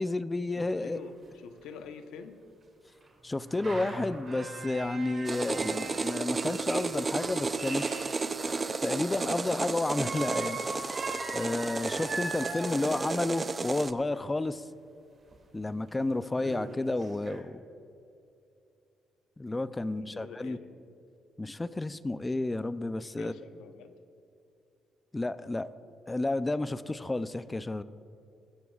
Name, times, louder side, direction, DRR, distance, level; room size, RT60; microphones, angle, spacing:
voice 1, 0.0-1.0 3.2-7.9 8.4-10.6 11.3-14.7 15.5-17.6 19.4-20.6 21.4-23.3 25.1-25.7 26.1-27.8, left 2 dB, 20° left, 14 dB, 0.5 m, -31 dB
voice 2, 0.6-2.4 19.9-20.7 23.0-23.9, left 6 dB, 90° left, 7 dB, 0.9 m, -47 dB
sound 1, 0.6-0.7 0.9-1.0 1.6-1.7 3.0-9.2 9.9-13.6 15.3-15.4 15.9-16.0 16.3-17.4, right 3 dB, 45° right, 2.4 m, -41 dB
sound 2, 5.2-13.9, right 4 dB, 30° right, 0.5 m, -33 dB
20.0 x 14.5 x 2.4 m, 2.7 s
cardioid pair, 90°, 0 cm